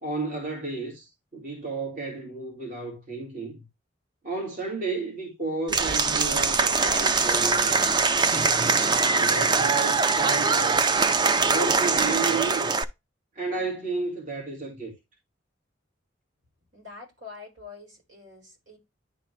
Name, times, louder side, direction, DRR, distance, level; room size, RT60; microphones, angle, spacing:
voice 1, 0.0-3.6 4.2-8.1 9.0-11.0 11.4-12.7 13.4-14.9, right 3 dB, 45° right, 2.0 m, -32 dB
Applause / Crowd, 5.7-12.8, right 4 dB, 25° right, 0.4 m, -22 dB
voice 2, 16.6-18.8, left 4 dB, 85° right, 4.8 m, -45 dB
10.0 x 3.8 x 3.2 m
head